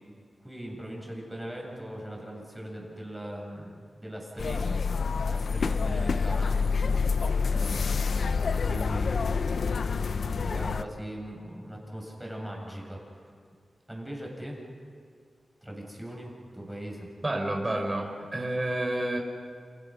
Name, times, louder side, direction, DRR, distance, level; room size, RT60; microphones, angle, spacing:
voice 1, 0.4-4.8 5.2-6.6 7.4-8.2 8.5-9.4 10.4-13.3 13.9-14.6 15.6-17.1, right 1 dB, 5° right, -1 dB, 7.5 m, -40 dB
sound 1, 4.4-10.8, left 5 dB, 70° left, 0.7 m, -27 dB
voice 2, 17.2-19.2, right 1 dB, 25° right, 2 dB, 4.6 m, -29 dB
29.0 x 28.5 x 6.4 m, 2.1 s
wide cardioid pair, 95°, 0 cm